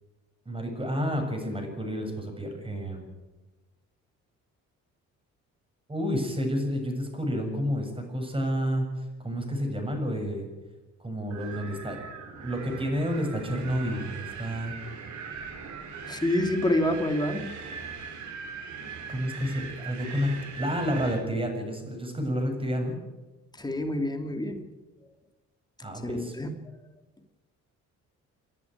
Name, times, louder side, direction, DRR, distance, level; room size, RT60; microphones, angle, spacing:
voice 1, 0.5-3.1 5.9-10.5 11.0-12.0 12.4-14.7 19.1-23.0 25.8-26.3, equal, 15° right, 4 dB, 7.3 m, -30 dB
Wind, 11.3-21.2, right 5 dB, 70° right, 4.4 m, -40 dB
voice 2, 16.1-17.5 23.6-24.6 26.0-26.5, left 1 dB, 15° left, 5 dB, 3.0 m, -27 dB
29.5 x 11.0 x 9.4 m, 1.2 s
cardioid pair, 90°, 30 cm